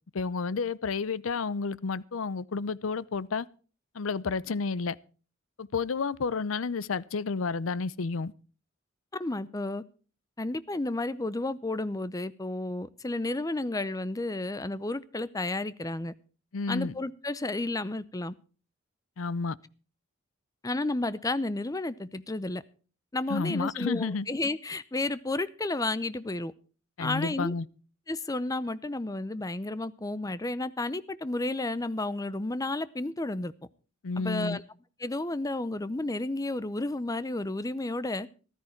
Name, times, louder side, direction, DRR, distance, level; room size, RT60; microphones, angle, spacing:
voice 1, 0.1-3.5 3.9-5.0 5.6-8.3 16.5-17.0 19.2-19.6 23.3-24.3 27.0-27.7 34.0-34.6, left 4 dB, 85° left, 0.6 m, -31 dB
voice 2, 9.2-9.8 10.4-16.1 16.7-18.3 20.6-22.6 23.1-26.5 27.0-27.5 28.1-33.5 34.2-34.6 35.0-38.3, left 2 dB, 15° left, 0.6 m, -32 dB
14.5 x 13.0 x 4.4 m
head